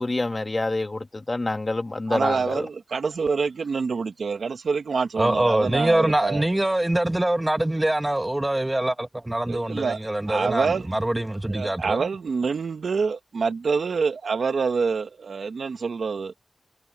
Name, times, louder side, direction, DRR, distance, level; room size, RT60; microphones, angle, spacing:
voice 1, 0.0-2.7, left 2 dB, 35° left, 1.5 m, -27 dB
voice 2, 2.1-6.4 9.5-10.0 10.3-10.9 11.5-16.3, right 5 dB, 90° right, 1.0 m, -26 dB
voice 3, 5.2-12.0, right 1 dB, 20° right, 1.2 m, -24 dB
wide cardioid pair, 75°, 0 cm